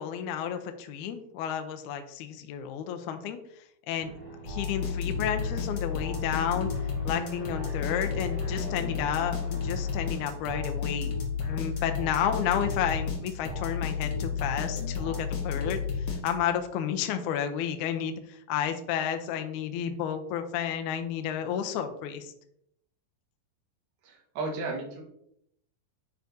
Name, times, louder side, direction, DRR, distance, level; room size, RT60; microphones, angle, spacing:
voice 1, 0.0-4.1 4.4-6.7 7.0-11.2 11.5-22.3, left 9 dB, 80° left, 7 dB, 1.8 m, -31 dB
Aircraft, 4.0-11.3, right 1 dB, 20° left, 1.9 m, -44 dB
sound 1, 4.5-16.7, left 5 dB, 60° left, 1.2 m, -32 dB
voice 2, 24.0-25.0, right 3 dB, 80° right, 0 dB, 3.1 m, -34 dB
9.1 x 4.7 x 2.7 m, 0.74 s
omnidirectional pair, 4.1 m